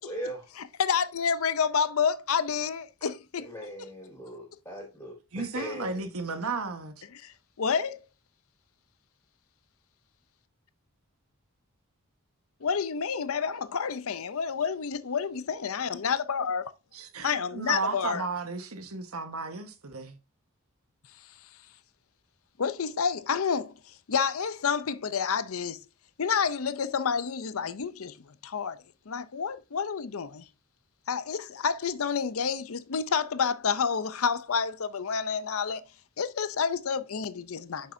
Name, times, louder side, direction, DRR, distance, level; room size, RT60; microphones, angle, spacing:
voice 1, 0.0-0.5 3.4-6.0, equal, 10° left, 4.0 m, -39 dB
voice 2, 0.6-3.5 3.8-3.9 7.2-7.3 7.6-8.0 12.6-16.6 17.2-18.2 22.6-23.7 24.1-25.8 26.2-28.2 28.4-28.8 29.1-30.4 31.1-35.8 36.2-37.9, left 6 dB, 70° left, 0.6 m, -29 dB
voice 3, 5.3-6.9 16.9-20.2, right 4 dB, 75° right, 1.4 m, -34 dB
9.4 x 6.6 x 2.7 m
head